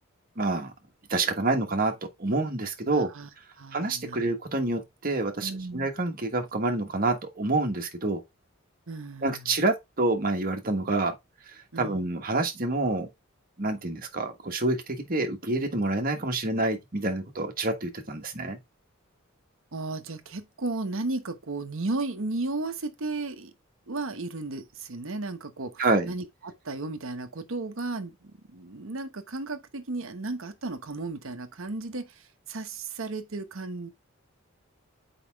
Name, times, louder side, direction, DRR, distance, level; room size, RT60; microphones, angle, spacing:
voice 1, 0.4-0.7 1.1-3.1 3.7-8.2 9.2-11.1 11.8-13.1 13.6-18.6 25.8-26.1, right 2 dB, 40° right, 1.3 m, -27 dB
voice 2, 2.9-3.3 3.6-4.3 5.4-5.9 8.9-9.6 11.7-12.1 19.7-23.5 23.9-33.9, right 2 dB, 65° right, 1.0 m, -34 dB
6.9 x 4.9 x 3.4 m
head